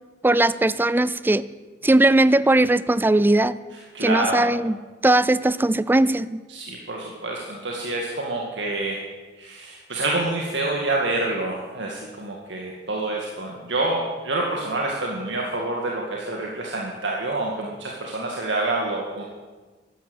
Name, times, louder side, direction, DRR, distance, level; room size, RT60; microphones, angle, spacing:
voice 1, 0.2-1.4 1.8-3.6 4.0-4.8 5.0-6.4, right 2 dB, 10° right, 17 dB, 0.4 m, -19 dB
voice 2, 3.9-4.5 6.5-9.0 9.4-19.2, right 2 dB, 75° right, -1 dB, 2.1 m, -27 dB
13.0 x 12.0 x 8.1 m, 1.3 s
head